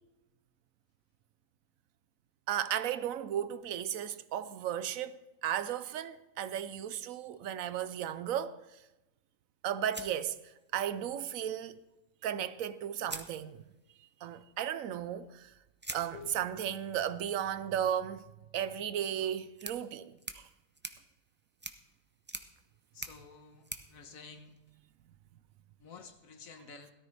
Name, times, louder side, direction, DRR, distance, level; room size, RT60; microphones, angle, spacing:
voice 1, 2.5-5.2 5.4-8.6 9.6-10.4 10.7-11.8 12.2-13.6 14.2-15.5 15.9-18.2 18.5-20.4, right 10 dB, 90° right, 1.1 m, -35 dB
sound 1, 9.9-11.0 12.4-12.5 13.0-14.0 15.8-25.0, right 2 dB, 15° right, 0.4 m, -48 dB
voice 2, 22.9-24.6 25.8-26.9, left 5 dB, 85° left, 1.6 m, -51 dB
17.5 x 13.0 x 3.3 m
omnidirectional pair, 1.4 m